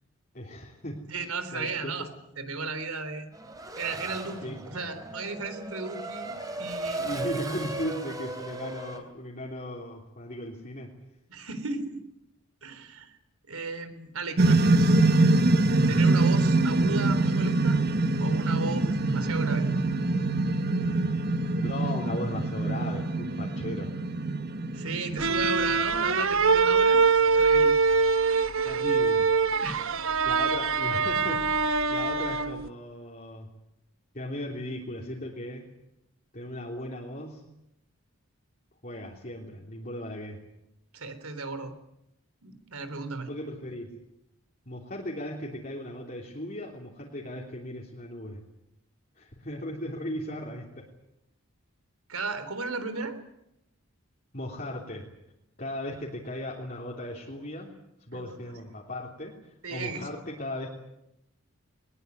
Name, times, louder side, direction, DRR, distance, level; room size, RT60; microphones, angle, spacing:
voice 1, 0.3-1.9 4.4-4.7 7.1-10.9 21.6-24.0 28.6-29.3 30.2-33.5 34.1-35.7 36.3-37.4 38.8-40.4 43.3-44.0 44.7-48.4 49.2-50.9 54.3-55.1 55.6-57.7 58.1-60.7, left 1 dB, 40° left, -3 dB, 3.4 m, -37 dB
voice 2, 1.1-2.1 2.4-3.3 3.8-7.1 11.3-12.1 12.6-13.2 13.5-15.0 15.9-17.8 18.2-19.7 24.7-27.0 27.3-27.8 29.6-30.0 40.9-41.7 42.4-43.3 52.1-53.2 58.1-58.4 59.6-60.2, right 3 dB, 85° right, 11 dB, 3.6 m, -35 dB
Race car auto racing / Accelerating revving vroom, 3.3-9.0, right 2 dB, 15° right, 3.6 m, -37 dB
sound 1, 14.4-25.8, right 2 dB, 45° right, 1.1 m, -24 dB
sound 2, 25.2-32.7, right 5 dB, 65° right, 1.1 m, -23 dB
22.0 x 20.5 x 9.5 m, 0.84 s
head